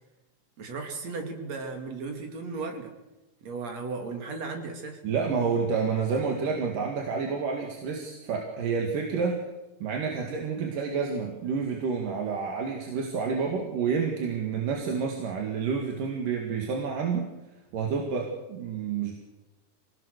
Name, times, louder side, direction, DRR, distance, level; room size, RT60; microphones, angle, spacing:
voice 1, 0.6-2.9 3.4-5.0, right 4 dB, 50° right, 4 dB, 3.7 m, -35 dB
voice 2, 5.0-9.4 9.8-17.3 17.7-19.1, right 5 dB, 70° right, 1 dB, 3.7 m, -29 dB
25.5 x 18.5 x 6.7 m, 1.0 s
omnidirectional pair, 4.0 m